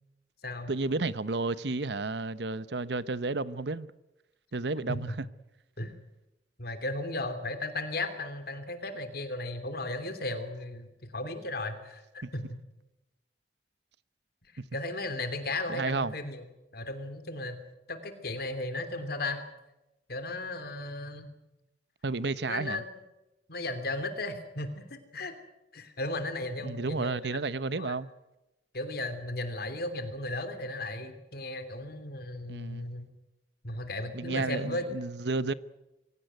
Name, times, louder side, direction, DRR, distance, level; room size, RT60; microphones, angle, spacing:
voice 1, 0.7-3.9 4.5-5.3 12.2-12.3 15.7-16.1 22.0-22.8 26.6-28.1 32.5-32.9 34.1-35.5, right 3 dB, 70° right, 0.9 m, -32 dB
voice 2, 6.6-12.6 14.7-16.4 16.7-17.6 17.9-19.4 20.1-21.3 22.5-22.9 23.5-25.3 25.7-27.2 27.8-27.9 28.7-33.1 33.6-34.8, left 2 dB, 60° left, 3.1 m, -35 dB
24.0 x 17.0 x 9.3 m
head